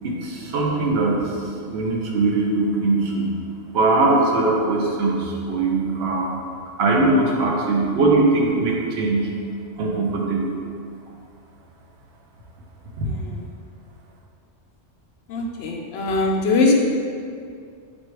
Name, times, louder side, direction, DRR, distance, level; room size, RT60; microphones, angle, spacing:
voice 1, 0.0-3.3 3.7-6.3 6.8-9.3 9.8-10.6 13.0-13.1, right 2 dB, 60° right, -1 dB, 0.9 m, -21 dB
voice 2, 13.0-13.4 15.3-16.7, left 3 dB, 65° left, 0 dB, 0.7 m, -21 dB
3.7 x 2.7 x 4.4 m, 2.3 s
omnidirectional pair, 1.3 m